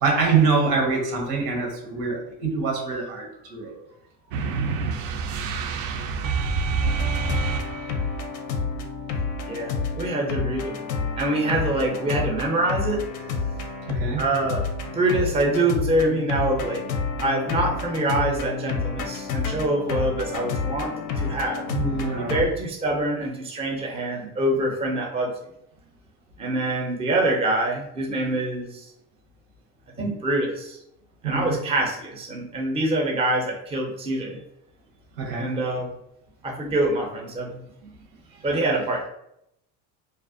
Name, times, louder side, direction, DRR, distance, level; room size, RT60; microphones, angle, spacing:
voice 1, 0.0-3.7 13.9-14.2 21.7-22.4 31.2-31.6 35.2-35.5, right 4 dB, 85° right, 0 dB, 1.0 m, -24 dB
sound 1, 4.3-8.2, right 5 dB, 65° right, 0.5 m, -27 dB
sound 2, 6.8-22.5, left 4 dB, 45° left, 0.4 m, -29 dB
voice 2, 9.5-10.8 11.2-13.3 14.2-16.8 17.2-21.7 22.2-25.3 26.4-28.9 30.0-30.8 31.2-34.4 35.3-35.9 36.4-37.6 38.4-39.1, right 1 dB, 15° right, 0 dB, 0.5 m, -25 dB
2.4 x 2.0 x 2.5 m, 0.79 s
supercardioid pair, 85°, 46 cm